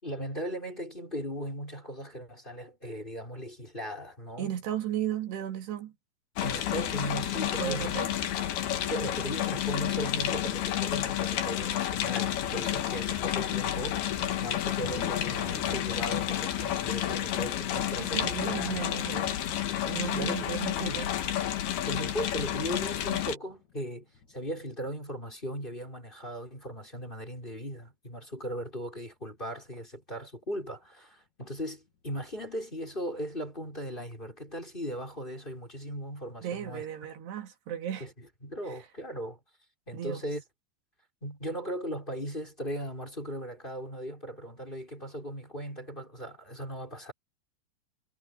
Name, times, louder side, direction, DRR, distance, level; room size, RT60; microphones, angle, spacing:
voice 1, 0.0-4.5 6.4-7.9 8.9-18.8 20.1-21.0 21.8-37.1 38.0-39.4 39.9-40.4 41.2-47.1, equal, 10° left, 6.2 m, -38 dB
voice 2, 4.4-5.9 7.6-8.2 18.0-19.4 19.8-21.1 36.4-38.1 38.7-38.8 39.9-40.2, right 10 dB, 80° right, 4.4 m, -35 dB
sound 1, 6.4-23.4, left 11 dB, 70° left, 3.6 m, -30 dB
Thunder, 14.3-22.8 23.5-25.2 26.3-26.4 27.0-27.1 29.0-29.1 30.4-30.5 32.1-32.2, left 6 dB, 45° left, 4.1 m, -47 dB
omnidirectional pair, 4.8 m